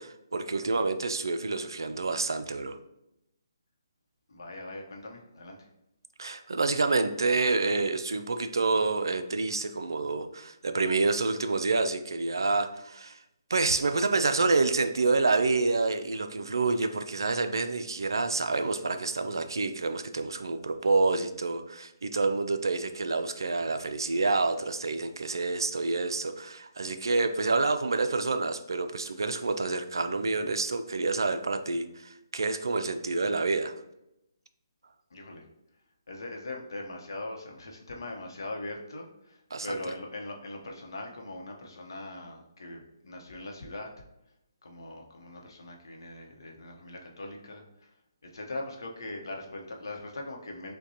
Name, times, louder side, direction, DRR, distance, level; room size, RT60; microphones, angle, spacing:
voice 1, 0.0-2.8 6.2-13.2 13.5-33.7 39.5-39.8, right 3 dB, 80° right, 9 dB, 0.4 m, -28 dB
voice 2, 4.3-5.7 35.1-35.4 36.1-43.9 44.6-47.9 48.2-50.7, left 2 dB, 75° left, 1 dB, 0.8 m, -41 dB
6.2 x 2.2 x 2.8 m, 0.86 s
hypercardioid pair, 150°, 2 cm